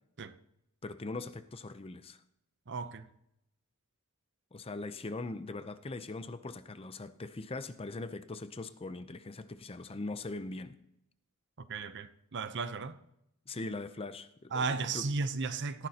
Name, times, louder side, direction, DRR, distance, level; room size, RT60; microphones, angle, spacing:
voice 1, 0.8-2.2 4.5-10.8 13.5-15.1, left 2 dB, 25° left, 0.6 m, -41 dB
voice 2, 2.7-3.1 11.6-13.0 14.5-15.9, right 4 dB, 55° right, 0.7 m, -35 dB
17.5 x 14.5 x 2.9 m
head